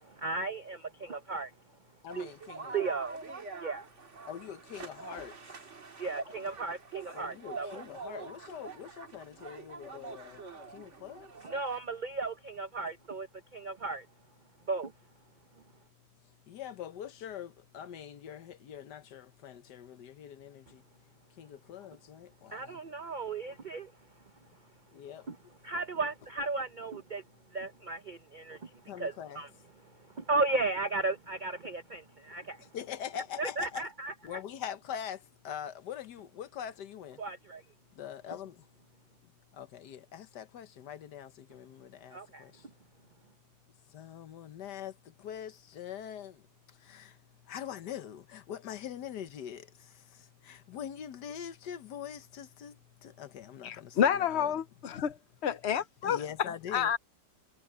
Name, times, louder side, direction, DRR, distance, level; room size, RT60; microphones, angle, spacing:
voice 1, 0.1-1.5 2.1-2.3 2.7-3.2 3.6-3.9 6.0-7.7 11.5-13.3 13.5-14.1 14.7-14.9 22.5-23.9 25.3-25.4 25.6-27.2 27.5-28.7 29.0-29.5 30.2-32.6 33.4-34.1 37.2-37.6 42.1-42.4, right 3 dB, 65° right, 0.4 m, -35 dB
voice 2, 2.0-2.8 4.3-5.3 7.1-10.4 10.7-11.3 16.5-20.6 21.4-22.3 25.0-25.2 28.9-29.4 32.7-33.8 34.2-35.2 35.4-37.2 38.0-38.5 39.6-42.2 43.9-44.9 45.2-46.3 47.5-49.6 50.5-52.7 53.2-54.5 55.5-55.6 56.0-56.9, left 9 dB, 75° left, 1.6 m, -43 dB
sound 1, 2.1-11.8, right 4 dB, 45° right, 2.0 m, -45 dB
voice 3, 53.6-55.2 55.4-56.2 56.7-57.0, left 8 dB, 55° left, 0.7 m, -29 dB
omnidirectional pair, 1.8 m